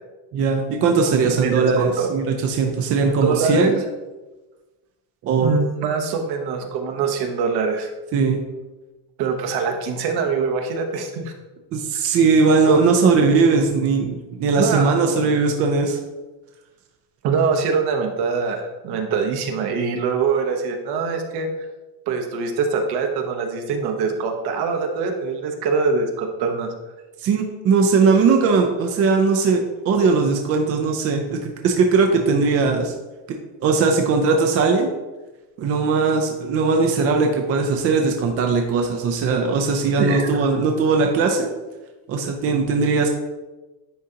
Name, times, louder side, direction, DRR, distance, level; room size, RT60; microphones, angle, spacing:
voice 1, 0.3-3.7 5.2-5.5 8.1-8.4 11.7-16.0 27.2-32.9 33.6-34.9 35.6-41.5 42.1-43.1, right 4 dB, 35° right, 3 dB, 0.4 m, -19 dB
voice 2, 1.4-2.1 3.0-3.8 5.4-7.9 9.2-11.3 12.7-12.9 14.6-14.9 17.2-21.5 22.1-26.7 40.0-40.3, right 5 dB, 55° right, 3 dB, 1.0 m, -23 dB
10.0 x 3.8 x 2.8 m, 1.1 s
cardioid pair, 180°, 45 cm